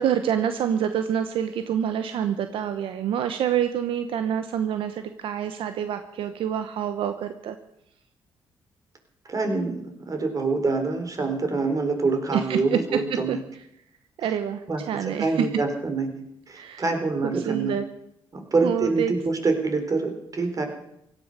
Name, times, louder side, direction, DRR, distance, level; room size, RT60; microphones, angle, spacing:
voice 1, 0.0-7.6 12.3-13.4 14.2-15.5 16.5-16.8 17.2-17.8 18.6-19.1, right 9 dB, 80° right, 9 dB, 1.0 m, -27 dB
voice 2, 9.3-13.4 14.7-16.1 16.5-17.7 18.3-20.7, right 3 dB, 40° right, 5 dB, 4.0 m, -26 dB
16.5 x 13.0 x 6.6 m, 0.78 s
cardioid pair, 75°, 9 cm